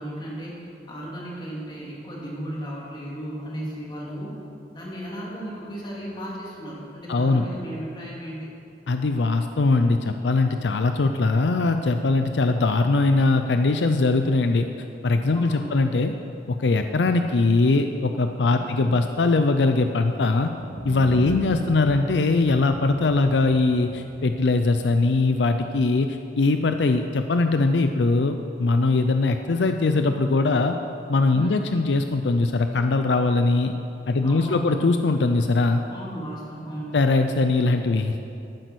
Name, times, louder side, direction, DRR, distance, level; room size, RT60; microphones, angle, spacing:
voice 1, 0.0-4.4 4.7-8.5 15.3-15.8 18.5-18.9 21.2-21.4 31.3-31.6 34.2-34.9 35.9-37.0, equal, 25° left, -4 dB, 2.8 m, -35 dB
voice 2, 7.1-7.4 8.9-14.7 15.0-16.1 16.5-20.5 20.8-30.8 31.1-33.7 34.1-35.8 36.9-38.2, left 3 dB, 80° left, 7 dB, 0.5 m, -21 dB
sound 1, 20.5-26.4, right 1 dB, 75° right, 1.4 m, -38 dB
12.0 x 9.4 x 6.2 m, 2.7 s
head